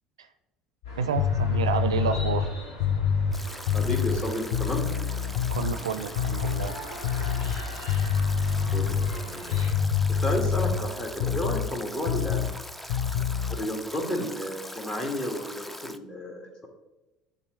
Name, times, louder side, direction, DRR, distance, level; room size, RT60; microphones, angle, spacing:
sound 1, 0.8-9.7, equal, 80° left, 2.2 m, -43 dB
sound 2, 0.8-5.8 6.1-6.7 7.0-11.7 12.1-12.6 12.9-13.6, left 7 dB, 65° left, 0.5 m, -26 dB
voice 1, 1.0-2.5 5.5-6.8, right 6 dB, 85° right, 10 dB, 0.5 m, -29 dB
Stream / Drip / Trickle dribble, 3.3-16.0, equal, 5° left, 0.5 m, -42 dB
voice 2, 3.7-4.8 8.7-9.8 10.2-12.4 13.5-16.7, left 1 dB, 30° left, 1 dB, 2.1 m, -32 dB
10.5 x 4.0 x 3.2 m, 1.0 s
hypercardioid pair, 65°, 3 cm